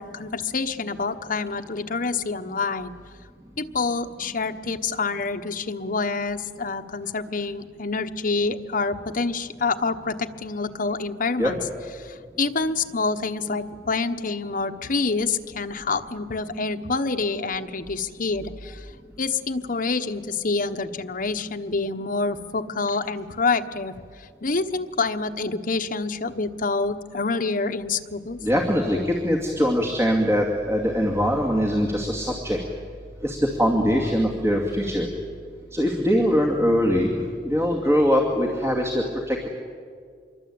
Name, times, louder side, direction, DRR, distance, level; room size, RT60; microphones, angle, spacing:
voice 1, 0.0-3.0 3.6-11.6 12.0-18.9 19.2-28.5, left 4 dB, 50° left, 7 dB, 1.2 m, -27 dB
voice 2, 28.4-32.6 33.2-35.1 35.7-37.2 37.4-39.5, equal, 15° right, 1 dB, 2.4 m, -22 dB
26.5 x 23.0 x 8.7 m, 2.1 s
head